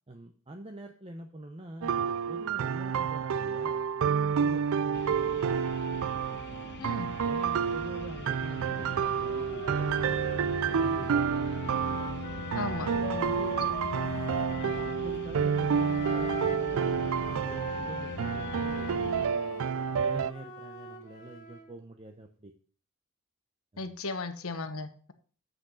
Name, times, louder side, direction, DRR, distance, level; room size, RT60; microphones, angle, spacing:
voice 1, 0.1-5.4 6.5-6.9 7.2-11.5 12.1-12.5 12.7-13.8 14.5-16.4 16.7-19.7 20.0-22.5 23.7-24.0, right 2 dB, 25° right, 4 dB, 0.8 m, -45 dB
sound 1, 1.8-20.3, right 7 dB, 65° right, 0.4 m, -29 dB
sound 2, 4.9-19.3, left 3 dB, 50° left, 0.6 m, -42 dB
voice 2, 6.8-7.1 12.5-12.9 23.8-25.1, left 3 dB, 70° left, 9 dB, 1.1 m, -36 dB
Wind instrument woodwind instrument, 8.6-15.0 15.7-21.7, left 4 dB, 35° left, 2.7 m, -42 dB
7.9 x 6.6 x 6.3 m, 0.43 s
head